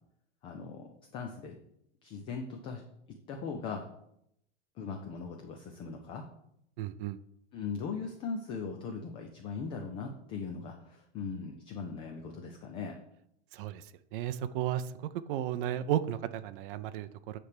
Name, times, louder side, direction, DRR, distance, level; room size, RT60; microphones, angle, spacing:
voice 1, 0.4-1.6 2.0-2.8 3.3-3.9 4.8-6.2 7.5-13.0, left 5 dB, 15° left, 3 dB, 0.3 m, -39 dB
voice 2, 6.8-7.2 13.5-13.8 14.1-14.9 15.3-17.4, right 11 dB, 50° right, 11 dB, 0.5 m, -33 dB
9.5 x 3.4 x 6.6 m, 0.76 s
supercardioid pair, 145°, 35 cm